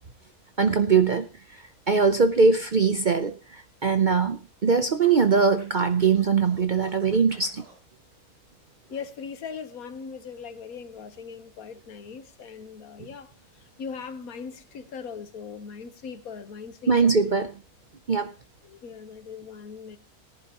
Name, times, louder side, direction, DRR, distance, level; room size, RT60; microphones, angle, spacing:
voice 1, 0.6-1.2 1.9-7.6 16.9-17.5 18.1-18.3, right 5 dB, 45° right, 0.6 m, -21 dB
Scratching (performance technique), 5.0-7.8, right 2 dB, 90° right, 5.8 m, -52 dB
voice 2, 8.9-13.3 13.8-17.1 18.6-20.0, left 6 dB, 75° left, 1.5 m, -39 dB
18.0 x 11.0 x 2.9 m
omnidirectional pair, 1.6 m